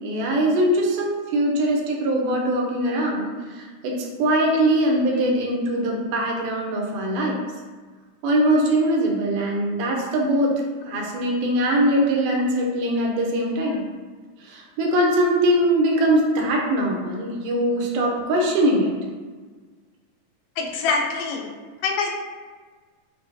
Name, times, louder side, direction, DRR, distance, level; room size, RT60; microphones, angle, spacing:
voice 1, 0.0-7.4 8.2-10.5 10.9-13.8 14.4-18.9, right 1 dB, 85° right, -1 dB, 2.2 m, -22 dB
voice 2, 20.6-21.5 21.8-22.1, left 4 dB, 90° left, 2 dB, 2.2 m, -25 dB
6.0 x 2.2 x 2.6 m, 1.4 s
omnidirectional pair, 3.7 m